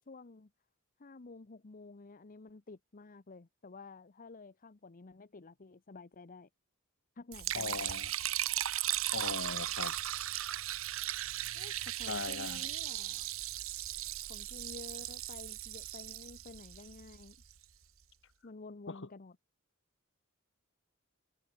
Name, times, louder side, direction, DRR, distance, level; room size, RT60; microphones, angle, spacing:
voice 1, 0.1-0.5 1.0-6.5 7.2-7.9 11.5-13.3 14.2-17.4 18.4-19.4, left 3 dB, 40° left, 0.8 m, -51 dB
Liquid, 7.3-17.5, right 13 dB, 70° right, 1.2 m, -37 dB
voice 2, 7.5-8.1 8.6-9.9 12.1-12.7 18.9-19.0, left 4 dB, 60° left, 1.6 m, -40 dB
head